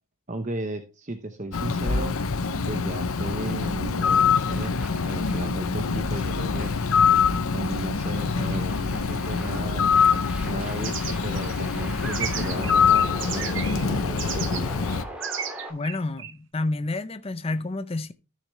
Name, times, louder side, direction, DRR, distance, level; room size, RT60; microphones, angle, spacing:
voice 1, 0.3-2.1 2.7-4.8 5.0-6.7 7.5-9.9 10.4-14.7, right 2 dB, 35° right, 0.8 m, -35 dB
Bird, 1.5-15.0, left 5 dB, 75° left, 0.7 m, -24 dB
sound 1, 3.2-15.7, equal, 5° right, 2.1 m, -42 dB
sound 2, 10.8-13.8 14.2-14.6 14.9-16.3, right 8 dB, 55° right, 1.2 m, -34 dB
voice 2, 15.7-18.1, left 2 dB, 25° left, 0.5 m, -29 dB
13.5 x 6.6 x 3.0 m
head